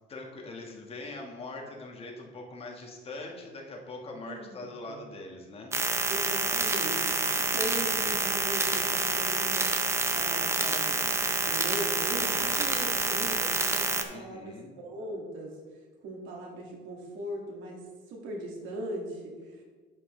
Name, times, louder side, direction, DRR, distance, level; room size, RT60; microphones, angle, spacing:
voice 1, 0.1-5.7 14.1-14.7, left 2 dB, 30° left, 0 dB, 1.5 m, -42 dB
voice 2, 4.2-4.6 4.9-5.0 6.1-9.8 10.1-19.6, right 1 dB, 90° right, 0 dB, 2.0 m, -39 dB
sound 1, 5.7-14.0, right 3 dB, 15° right, 0.6 m, -28 dB
11.0 x 5.5 x 3.2 m, 1.4 s
cardioid pair, 140°, 20 cm